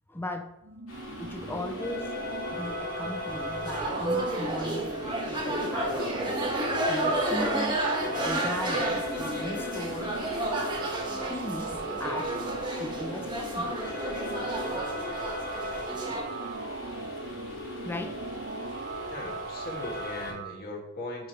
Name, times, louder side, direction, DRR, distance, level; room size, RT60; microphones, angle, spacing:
voice 1, 0.1-0.5 1.2-2.2 2.5-6.3 6.9-7.8 8.2-10.2 10.8-13.8 16.5-16.8 17.8-18.2 18.6-18.8, left 1 dB, 10° left, 6 dB, 0.5 m, -38 dB
sound 1, 0.6-20.5, right 3 dB, 55° right, 0.7 m, -38 dB
sound 2, 0.9-20.3, left 3 dB, 75° left, 2.7 m, -41 dB
sound 3, 3.3-16.2, right 1 dB, 25° right, 1.2 m, -31 dB
voice 2, 19.1-21.3, left 1 dB, 50° left, 0 dB, 1.7 m, -38 dB
6.1 x 5.0 x 4.5 m, 0.88 s
head